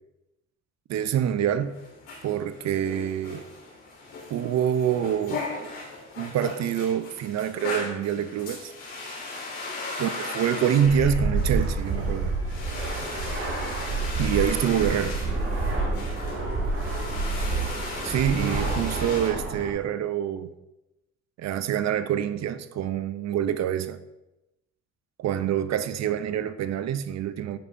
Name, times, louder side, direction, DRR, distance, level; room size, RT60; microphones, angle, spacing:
voice 1, 0.9-1.8 2.2-3.4 4.3-5.7 6.2-8.7 10.0-12.3 14.2-15.2 18.0-20.5 21.4-24.0 25.2-27.6, right 9 dB, 60° right, 0.5 m, -26 dB
sound 1, 1.6-19.3, left 3 dB, 90° left, 2.6 m, -37 dB
Fixed-wing aircraft airplane, 10.9-19.7, right 3 dB, 45° right, 1.7 m, -28 dB
10.0 x 5.4 x 2.6 m
cardioid pair, 90°, 30 cm